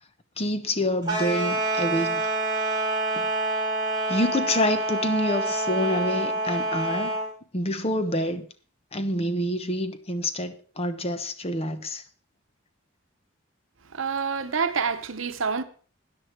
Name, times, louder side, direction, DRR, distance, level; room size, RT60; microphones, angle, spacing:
voice 1, 0.4-2.2 3.2-3.3 4.1-7.2 7.5-8.4 8.9-12.0, left 1 dB, 30° left, 1.0 m, -27 dB
sound 1, 1.0-7.3, right 2 dB, 20° right, 5.8 m, -27 dB
voice 2, 13.9-15.6, right 5 dB, 70° right, 0.9 m, -27 dB
13.5 x 9.8 x 4.5 m
head